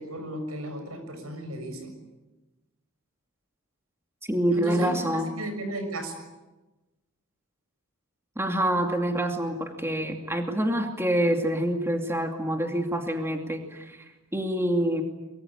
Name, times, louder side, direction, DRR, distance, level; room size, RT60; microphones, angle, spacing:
voice 1, 0.0-1.9 4.5-6.2, right 1 dB, 90° right, 7 dB, 6.6 m, -35 dB
voice 2, 4.3-5.3 8.4-14.1 14.3-15.0, right 1 dB, 10° right, 4 dB, 2.5 m, -26 dB
24.0 x 23.0 x 9.7 m, 1.1 s
head